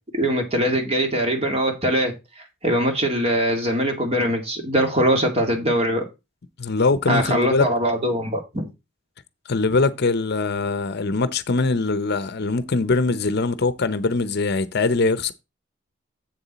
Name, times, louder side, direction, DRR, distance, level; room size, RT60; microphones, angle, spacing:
voice 1, 0.1-6.0 7.1-8.7, right 1 dB, 30° right, 2.1 m, -22 dB
voice 2, 6.6-7.7 9.5-15.3, left 3 dB, 55° left, 0.7 m, -22 dB
7.7 x 7.0 x 4.1 m
head